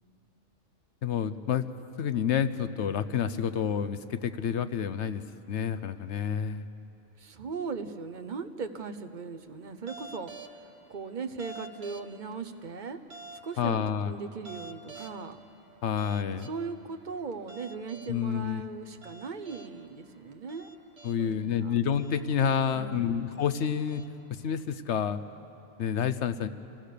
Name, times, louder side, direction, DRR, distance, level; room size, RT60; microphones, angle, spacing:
voice 1, 1.0-1.6 2.0-5.2 5.5-6.6 13.6-14.1 15.8-16.5 18.1-18.6 21.0-24.0 24.3-25.2 25.8-26.5, left 8 dB, 70° left, 12 dB, 1.0 m, -29 dB
voice 2, 7.2-13.0 13.4-15.4 16.2-20.7 21.2-21.7 22.7-23.1, right 5 dB, 45° right, 7 dB, 0.9 m, -39 dB
sound 1, 9.9-10.6 11.3-12.3 13.1-13.5 14.3-15.3 16.0-16.6 17.3-18.3 19.0-19.7 20.3-21.3 21.9-22.7 23.3-24.3, right 3 dB, 60° right, 1.5 m, -47 dB
26.5 x 16.5 x 6.7 m, 2.7 s
omnidirectional pair, 1.2 m